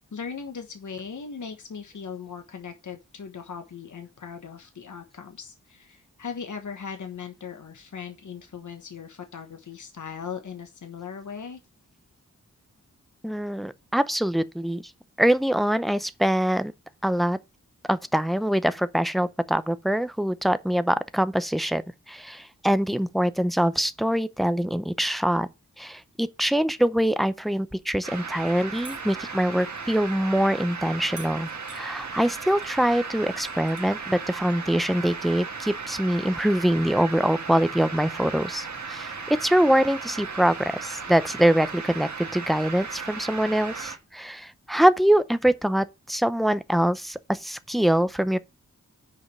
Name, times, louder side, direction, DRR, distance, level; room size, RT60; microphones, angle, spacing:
voice 1, 0.1-11.6, left 6 dB, 75° left, 1.3 m, -38 dB
voice 2, 13.2-14.8 15.2-16.7 17.0-17.4 17.9-25.5 25.8-48.4, right 1 dB, ahead, 0.5 m, -24 dB
sound 1, 28.0-44.0, right 5 dB, 65° right, 1.5 m, -36 dB
sound 2, 28.8-29.3 31.2-31.9 32.6-32.8 33.1-34.1 35.3-35.4, right 4 dB, 25° right, 3.4 m, -47 dB
6.5 x 5.1 x 7.0 m
wide cardioid pair, 105°, 30 cm